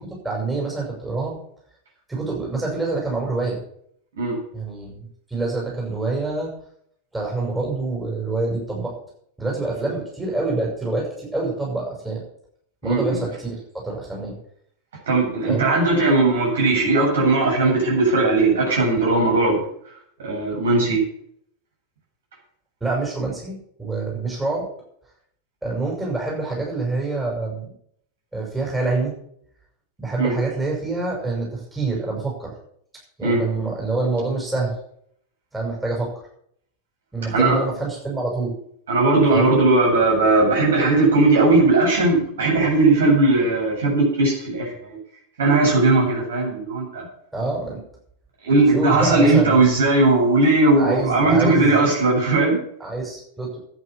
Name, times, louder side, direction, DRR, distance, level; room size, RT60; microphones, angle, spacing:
voice 1, 0.2-1.4 2.1-3.6 4.5-5.0 5.3-6.5 7.1-8.9 9.4-12.2 12.8-14.3 15.5-15.6 22.8-24.7 25.6-27.6 28.3-29.1 30.0-32.5 33.2-34.7 35.5-36.1 37.1-38.5 39.3-39.5 47.3-47.8 48.7-49.7 50.8-51.9 52.8-53.6, right 3 dB, 10° right, -3 dB, 6.2 m, -26 dB
voice 2, 12.8-13.2 15.1-19.6 20.2-21.0 30.2-30.3 33.2-33.4 37.3-37.6 38.9-45.0 45.4-47.1 48.4-52.6, right 2 dB, 60° right, -2 dB, 7.9 m, -18 dB
11.0 x 9.2 x 8.6 m, 0.66 s
figure-of-eight pair, 90°, 0 cm